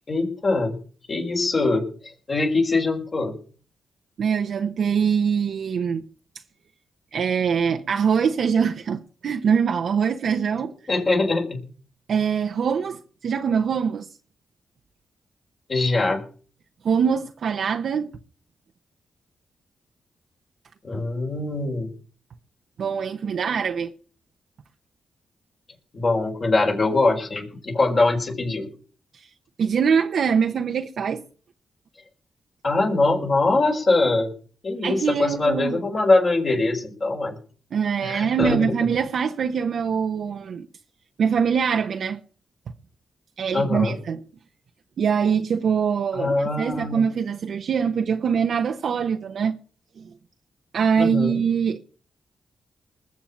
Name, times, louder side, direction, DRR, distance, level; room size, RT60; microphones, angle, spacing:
voice 1, 0.1-0.8 1.1-1.9 2.3-3.3 10.9-11.6 12.1-12.2 15.7-16.2 20.8-21.9 25.9-28.7 32.6-34.3 34.6-37.4 38.0-38.7 43.5-44.0 46.1-47.0 51.0-51.4, left 2 dB, 50° left, 5.0 m, -22 dB
voice 2, 4.2-6.0 7.1-10.7 12.1-14.1 16.8-18.1 22.8-23.9 29.6-31.2 34.8-35.8 37.7-40.7 41.2-42.2 43.4-44.2 45.0-49.5 50.0-50.1 50.7-51.8, right 6 dB, 70° right, 0.9 m, -23 dB
20.5 x 7.3 x 7.3 m
supercardioid pair, 45°, 0 cm